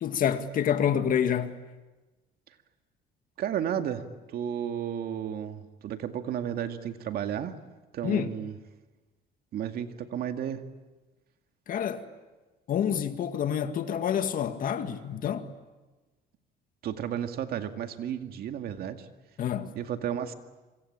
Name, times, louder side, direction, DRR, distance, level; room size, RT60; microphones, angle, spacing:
voice 1, 0.0-1.6 8.0-8.3 11.7-12.1 12.7-15.5 19.4-19.7, left 8 dB, 55° left, 2.1 m, -28 dB
voice 2, 3.4-7.6 7.9-8.6 9.5-10.6 16.8-19.1 19.8-20.3, right 9 dB, 65° right, 2.1 m, -33 dB
27.5 x 25.0 x 8.8 m
cardioid pair, 110°, 17 cm